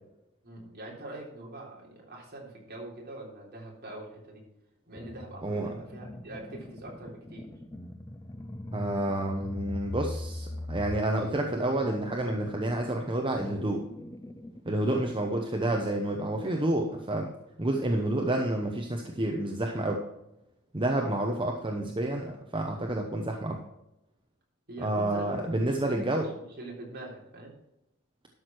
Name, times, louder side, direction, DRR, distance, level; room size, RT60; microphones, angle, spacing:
voice 1, 0.4-4.4 4.9-7.5 14.9-15.1 24.7-27.5, right 1 dB, 50° right, -2 dB, 3.5 m, -44 dB
sound 1, 5.0-15.4, left 1 dB, 15° left, 0.6 m, -41 dB
voice 2, 5.4-5.7 8.7-13.9 14.7-17.3 17.6-20.0 20.7-23.6 24.8-26.3, right 1 dB, 25° right, 1 dB, 1.0 m, -29 dB
12.0 x 6.5 x 4.6 m, 0.89 s
head